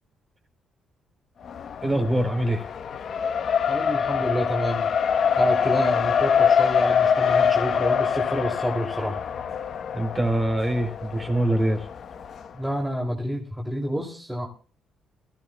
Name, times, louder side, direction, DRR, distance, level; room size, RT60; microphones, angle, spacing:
Race car auto racing, 1.5-12.5, left 7 dB, 60° left, 1.0 m, -24 dB
voice 1, 1.8-2.7 9.9-11.9, right 1 dB, 25° right, 5 dB, 3.5 m, -24 dB
voice 2, 3.7-4.9 5.4-9.2 12.5-14.5, equal, ahead, -1 dB, 2.6 m, -28 dB
22.0 x 13.5 x 2.2 m, 0.38 s
cardioid pair, 90°, 0 cm